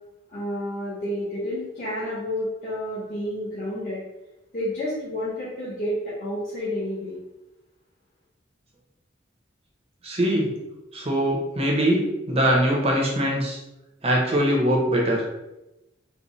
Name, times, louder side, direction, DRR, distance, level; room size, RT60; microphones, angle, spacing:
voice 1, 0.3-4.0 4.5-7.2, left 1 dB, 45° left, -10 dB, 0.9 m, -30 dB
voice 2, 10.0-10.5 10.9-13.6 14.0-15.2, equal, 30° right, -2 dB, 0.7 m, -22 dB
4.0 x 2.0 x 3.1 m, 0.96 s
head